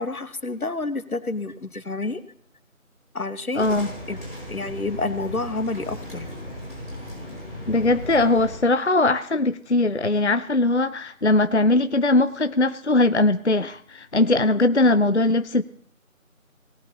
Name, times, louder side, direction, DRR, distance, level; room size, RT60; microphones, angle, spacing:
voice 1, 0.0-2.2 3.1-3.6 4.1-4.2 4.5-6.3 14.9-15.0, left 3 dB, 90° left, 12 dB, 1.4 m, -29 dB
voice 2, 3.6-3.9 7.7-15.6, left 2 dB, 55° left, 12 dB, 0.4 m, -20 dB
sound 1, 3.6-8.6, left 1 dB, 40° right, 5.5 m, -36 dB
18.5 x 12.0 x 2.9 m, 0.62 s
figure-of-eight pair, 175°, 42 cm